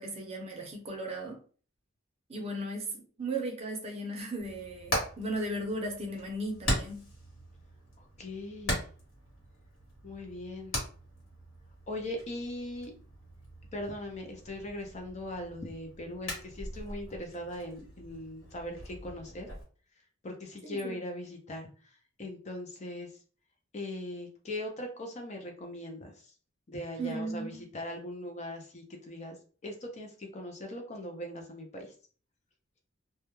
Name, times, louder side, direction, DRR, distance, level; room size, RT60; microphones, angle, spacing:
voice 1, 0.0-1.4 2.3-7.1 20.6-21.0 27.0-27.7, right 1 dB, 30° right, 1 dB, 0.6 m, -36 dB
Hammer, 4.4-19.6, equal, 80° left, 1.3 m, -40 dB
voice 2, 8.2-8.9 10.0-10.8 11.9-12.9 13.7-19.5 20.2-21.7 22.2-23.2 23.7-26.3 26.7-29.4 29.6-31.9, left 1 dB, 35° left, 3 dB, 0.5 m, -40 dB
2.3 x 2.1 x 3.0 m, 0.41 s
head